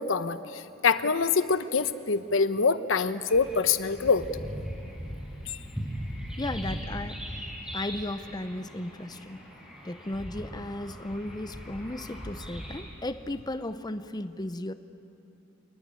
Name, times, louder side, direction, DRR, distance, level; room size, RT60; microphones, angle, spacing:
voice 1, 0.0-4.2 5.5-5.6, left 5 dB, 80° left, 12 dB, 0.9 m, -25 dB
sound 1, 3.3-12.8, equal, 5° right, 6.2 m, -39 dB
voice 2, 6.4-7.4 7.7-9.4 9.8-14.7, left 1 dB, 20° left, 10 dB, 0.7 m, -35 dB
27.0 x 19.5 x 9.8 m, 2.7 s
head